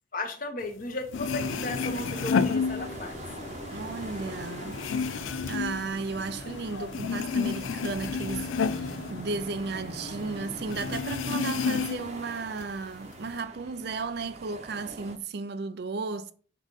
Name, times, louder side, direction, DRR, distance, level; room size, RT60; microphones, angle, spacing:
voice 1, 0.1-3.4, left 2 dB, 45° left, 1.0 m, -35 dB
sound 1, 0.8-0.9 1.1-3.3 3.7-6.6 6.9-9.9 10.2-10.3 10.7-12.2 12.6-13.3, left 5 dB, 90° left, 0.4 m, -30 dB
sound 2, 1.1-11.0, left 1 dB, 70° left, 1.4 m, -41 dB
sound 3, 1.3-15.2, right 2 dB, 35° right, 0.8 m, -45 dB
voice 2, 3.7-4.8 5.4-16.3, right 4 dB, 55° right, 0.4 m, -34 dB
5.3 x 3.8 x 5.3 m
head